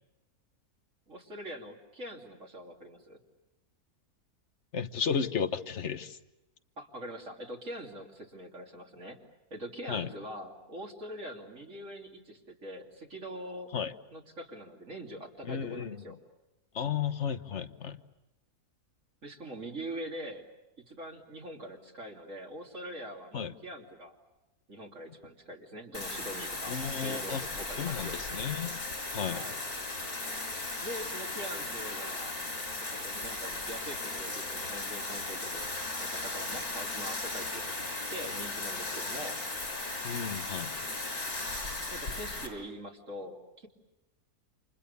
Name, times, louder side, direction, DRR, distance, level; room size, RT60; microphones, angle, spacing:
voice 1, 1.1-3.2 6.8-9.2 9.5-13.7 14.1-16.2 19.2-20.4 20.8-24.2 24.7-28.3 29.3-29.6 30.8-32.4 32.9-35.7 36.0-39.4 41.9-43.7, right 1 dB, 55° right, 0 dB, 3.3 m, -43 dB
voice 2, 4.7-6.2 9.9-10.1 13.7-13.9 15.5-16.0 16.7-18.0 23.3-23.5 26.7-27.4 27.8-28.8 29.1-29.4 40.0-40.8, left 7 dB, 50° left, 11 dB, 1.3 m, -33 dB
Bathtub (filling or washing), 25.9-42.5, left 2 dB, 80° left, 5.6 m, -37 dB
29.5 x 27.5 x 6.9 m, 1.0 s
omnidirectional pair, 1.6 m